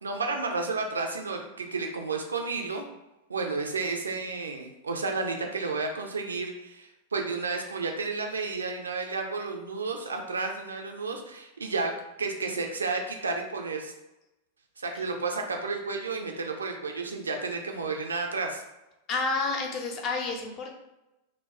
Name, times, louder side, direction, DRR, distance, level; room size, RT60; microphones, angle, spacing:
voice 1, 0.0-2.8 3.3-11.9 12.2-13.9 14.8-18.6, right 4 dB, 75° right, 3 dB, 0.4 m, -32 dB
voice 2, 19.1-20.8, left 3 dB, 35° left, 1 dB, 0.5 m, -30 dB
2.2 x 2.1 x 3.5 m, 0.96 s
figure-of-eight pair, 90°, 0 cm